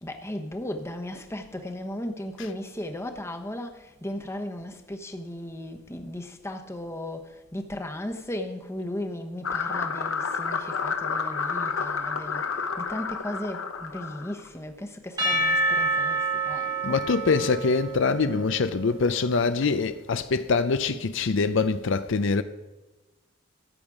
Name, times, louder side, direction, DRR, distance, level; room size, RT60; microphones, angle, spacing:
voice 1, 0.0-17.0, left 1 dB, 15° left, 1.0 m, -36 dB
sound 1, 9.4-14.5, left 5 dB, 90° left, 1.1 m, -30 dB
Percussion / Church bell, 15.2-19.4, right 2 dB, 20° right, 1.4 m, -28 dB
voice 2, 16.8-22.4, left 4 dB, 65° left, 0.5 m, -24 dB
14.0 x 8.9 x 4.9 m
head